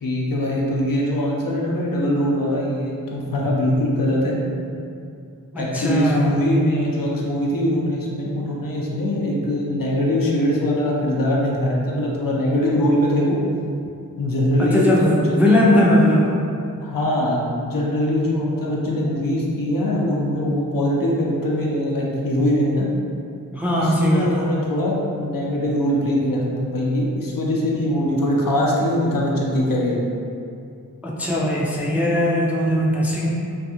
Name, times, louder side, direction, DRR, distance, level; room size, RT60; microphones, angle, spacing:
voice 1, 0.0-4.4 5.6-13.4 14.2-15.6 16.8-22.9 23.8-30.1, left 1 dB, 65° left, -3 dB, 0.6 m, -22 dB
voice 2, 5.5-6.4 14.6-16.3 23.5-24.6 31.0-33.3, left 1 dB, 5° right, -5 dB, 0.3 m, -19 dB
2.6 x 2.4 x 2.6 m, 2.4 s
wide cardioid pair, 65°, 36 cm